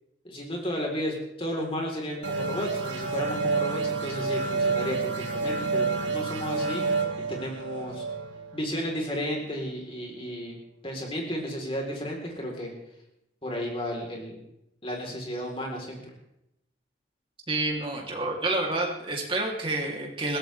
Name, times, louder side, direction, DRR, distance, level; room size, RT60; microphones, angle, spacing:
voice 1, 0.2-6.8 7.3-8.0 8.5-10.5 10.8-12.7 13.4-14.4 14.8-16.0, equal, 30° left, 0 dB, 4.0 m, -33 dB
sound 1, 2.2-9.5, right 4 dB, 70° right, 2.9 m, -29 dB
voice 2, 17.5-20.4, right 2 dB, 25° right, -1 dB, 3.2 m, -29 dB
21.0 x 16.5 x 3.5 m, 0.82 s
head